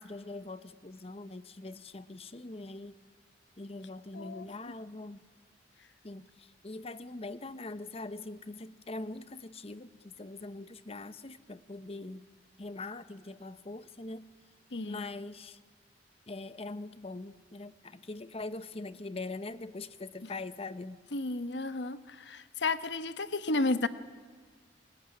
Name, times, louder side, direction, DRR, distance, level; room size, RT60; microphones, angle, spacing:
voice 1, 0.0-3.0 3.6-5.2 6.0-12.2 12.6-14.2 14.8-15.6 16.3-21.0, left 2 dB, 35° left, 13 dB, 0.9 m, -42 dB
voice 2, 4.1-4.4 14.7-15.0 21.1-23.9, left 3 dB, 75° left, 12 dB, 1.1 m, -32 dB
29.0 x 21.0 x 9.8 m, 1.5 s
head